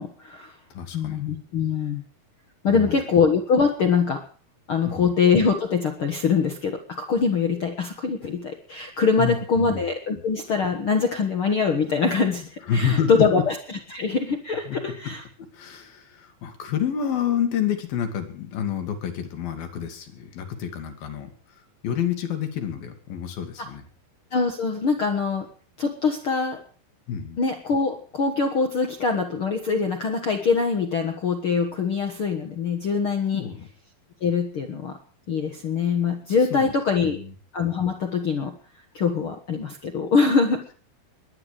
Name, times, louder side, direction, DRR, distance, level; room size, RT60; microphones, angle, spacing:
voice 1, 0.0-0.5 0.9-2.0 2.6-4.2 4.7-15.2 23.6-23.7 24.3-25.5 25.8-26.6 27.4-33.5 34.2-35.0 35.3-37.2 37.5-38.5 38.9-40.6, left 5 dB, 55° left, 4 dB, 1.5 m, -23 dB
voice 2, 0.7-1.2 2.7-3.0 4.9-5.1 9.2-9.8 12.7-13.1 14.7-14.8 15.5-23.8 27.1-27.4 33.3-33.7 36.5-37.3, left 8 dB, 75° left, 6 dB, 3.9 m, -29 dB
21.5 x 9.3 x 6.7 m, 0.42 s
omnidirectional pair, 4.2 m